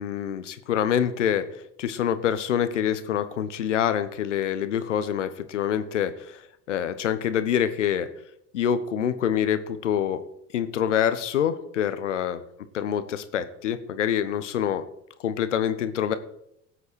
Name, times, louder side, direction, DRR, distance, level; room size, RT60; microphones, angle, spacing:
voice 1, 0.0-6.4 6.7-8.1 8.5-10.2 10.5-12.4 12.7-14.8 15.2-16.2, left 9 dB, 80° left, 12 dB, 1.1 m, -26 dB
17.0 x 8.0 x 4.7 m, 0.78 s
figure-of-eight pair, 65°, 36 cm